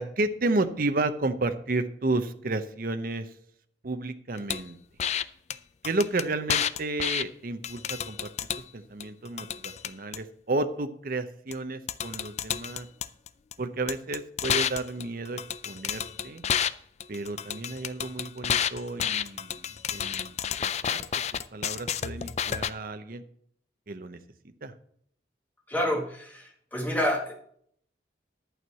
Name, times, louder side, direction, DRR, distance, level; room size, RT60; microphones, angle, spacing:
voice 1, 0.0-3.3 3.8-4.8 5.8-8.3 8.7-12.9 13.6-16.4 17.1-21.0 21.5-23.2 23.9-24.2 24.6-24.7, right 2 dB, 50° right, 9 dB, 0.7 m, -32 dB
sound 1, 4.5-4.6 5.0-5.2 5.5-5.6 5.8-7.2 7.6-8.6 9.0-10.2 11.5-11.6 11.9-13.5 13.9-16.7 17.0-22.7, left 9 dB, 35° left, 0.3 m, -30 dB
voice 2, 25.7-27.3, equal, 10° left, 1 dB, 1.7 m, -28 dB
11.5 x 4.7 x 7.3 m, 0.66 s
head